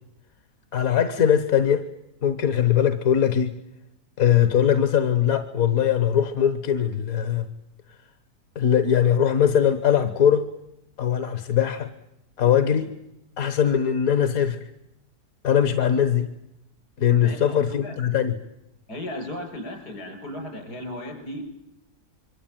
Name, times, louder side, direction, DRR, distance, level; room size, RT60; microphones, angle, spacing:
voice 1, 0.7-1.8 2.2-3.5 4.2-7.5 8.5-10.5 11.0-11.9 12.4-12.9 13.4-14.6 15.4-16.3 17.0-18.3, left 9 dB, 60° left, 10 dB, 1.6 m, -21 dB
voice 2, 17.2-17.9 18.9-21.5, left 1 dB, 80° left, 5 dB, 7.2 m, -35 dB
26.0 x 24.0 x 9.1 m, 0.87 s
omnidirectional pair, 1.7 m